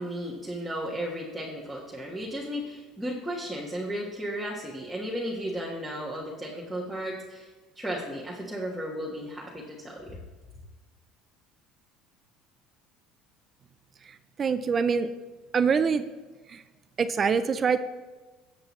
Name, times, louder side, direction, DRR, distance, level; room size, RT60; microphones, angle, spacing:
voice 1, 0.0-7.5 7.8-10.2, equal, ahead, -6 dB, 1.3 m, -34 dB
voice 2, 14.4-15.1 15.5-16.1 16.5-16.6 17.0-17.8, right 6 dB, 25° right, 12 dB, 0.4 m, -24 dB
18.0 x 7.6 x 3.1 m, 1.3 s
cardioid pair, 160°, 0 cm